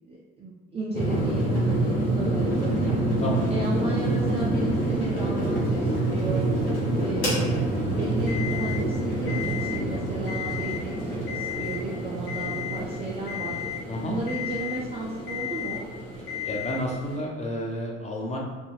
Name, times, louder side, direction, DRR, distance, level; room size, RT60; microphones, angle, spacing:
voice 1, 0.0-3.0 3.5-6.5 7.0-10.7 11.0-13.6 14.0-15.9, right 2 dB, 20° right, -5 dB, 0.4 m, -34 dB
sound 1, 0.9-17.2, right 1 dB, 90° left, 1.0 m, -27 dB
Alarm, 8.3-8.8 9.3-9.8 10.2-10.8 11.3-11.8 12.3-12.8 13.3-13.8 14.3-14.8 15.3-15.8 16.3-16.8, left 13 dB, 65° left, 0.6 m, -34 dB
voice 2, 16.4-18.4, equal, 20° left, -2 dB, 0.7 m, -30 dB
2.3 x 2.1 x 3.2 m, 1.2 s
hypercardioid pair, 60°, 33 cm